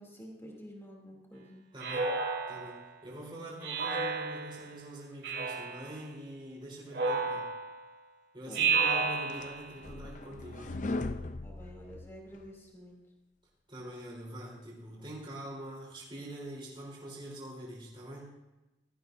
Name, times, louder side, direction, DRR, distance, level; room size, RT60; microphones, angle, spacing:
voice 1, 0.0-1.6 8.4-8.8 11.4-13.0, equal, 15° left, -1 dB, 2.9 m, -49 dB
voice 2, 1.7-2.1 2.5-7.5 8.3-10.9 13.7-18.3, right 1 dB, 30° right, -4 dB, 3.7 m, -44 dB
Speech synthesizer, 1.8-2.9 3.6-4.6 5.2-5.9 6.9-7.8 8.5-9.7, right 4 dB, 75° right, 3.8 m, -31 dB
sound 1, 8.8-12.5, left 2 dB, 45° left, 0.6 m, -39 dB
17.0 x 13.5 x 2.7 m, 1.0 s
head